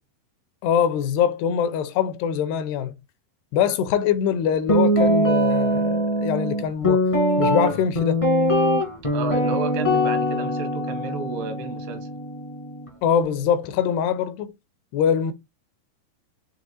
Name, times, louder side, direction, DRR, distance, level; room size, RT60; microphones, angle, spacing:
voice 1, 0.6-2.9 3.5-7.0 7.4-8.2 13.0-14.5 14.9-15.3, left 8 dB, 85° left, 2.8 m, -23 dB
Guitar, 4.7-12.9, equal, 40° left, 0.4 m, -22 dB
voice 2, 9.1-12.1, right 5 dB, 80° right, 3.2 m, -32 dB
7.1 x 3.3 x 4.1 m
omnidirectional pair, 4.7 m